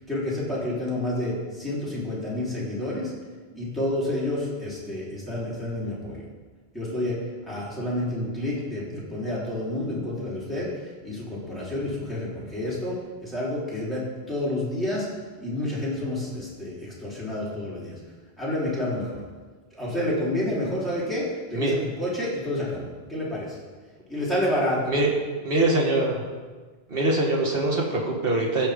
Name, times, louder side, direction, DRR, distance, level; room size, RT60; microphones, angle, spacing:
voice 1, 0.0-3.1 3.5-6.2 6.7-7.2 7.5-15.1 15.4-18.0 18.4-19.2 19.7-23.6 24.1-24.9, left 1 dB, ahead, -8 dB, 3.7 m, -29 dB
voice 2, 25.4-26.2 26.9-28.7, right 2 dB, 65° right, -1 dB, 1.9 m, -23 dB
16.0 x 5.9 x 5.2 m, 1.4 s
omnidirectional pair, 1.1 m